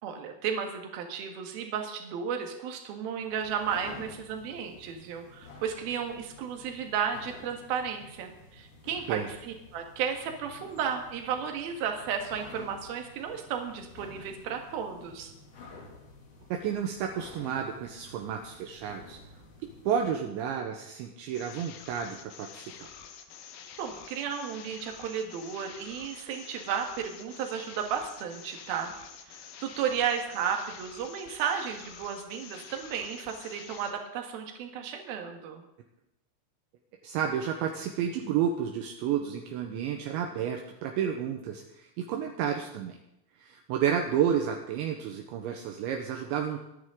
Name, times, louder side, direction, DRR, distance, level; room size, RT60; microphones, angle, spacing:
voice 1, 0.0-15.3 23.8-28.9 29.3-35.6, right 7 dB, 60° right, 4 dB, 3.0 m, -33 dB
sound 1, 3.1-20.3, left 3 dB, 45° left, 3.5 m, -51 dB
voice 2, 16.5-19.2 19.9-22.9 37.0-43.0 43.4-46.6, right 8 dB, 75° right, 3 dB, 3.0 m, -31 dB
sound 2, 21.3-33.9, left 7 dB, 75° left, 2.2 m, -48 dB
25.0 x 9.7 x 3.8 m, 0.85 s
omnidirectional pair, 5.7 m